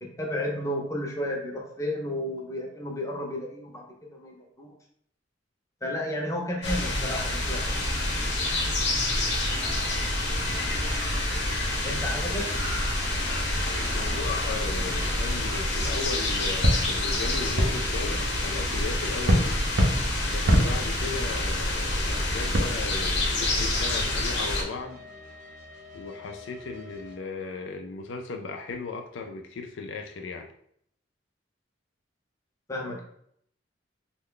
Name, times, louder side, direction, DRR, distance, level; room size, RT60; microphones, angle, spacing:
voice 1, 0.0-3.8 4.1-4.7 5.8-7.9 11.8-12.4 32.7-33.0, left 1 dB, 15° left, 0 dB, 0.7 m, -32 dB
sound 1, 6.6-24.6, left 2 dB, 65° left, 0.8 m, -28 dB
sound 2, 7.6-22.6, equal, 85° right, 0.7 m, -31 dB
voice 2, 12.2-12.8 13.7-19.6 20.3-25.0 25.9-30.5, left 4 dB, 80° left, 4 dB, 0.4 m, -37 dB
sound 3, 13.7-27.2, left 1 dB, 45° right, 0.7 m, -48 dB
3.1 x 2.2 x 3.7 m, 0.67 s
head